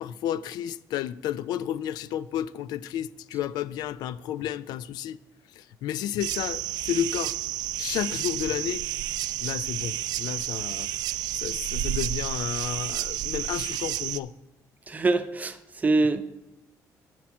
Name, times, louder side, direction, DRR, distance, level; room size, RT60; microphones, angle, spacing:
voice 1, 0.0-5.2 5.5-7.3 7.8-8.8 9.4-14.3, left 10 dB, 90° left, 0.4 m, -32 dB
sound 1, 6.2-14.2, right 13 dB, 85° right, 0.4 m, -31 dB
voice 2, 14.9-16.2, right 3 dB, 25° right, 0.6 m, -24 dB
10.5 x 4.5 x 7.1 m
cardioid pair, 125°, 7 cm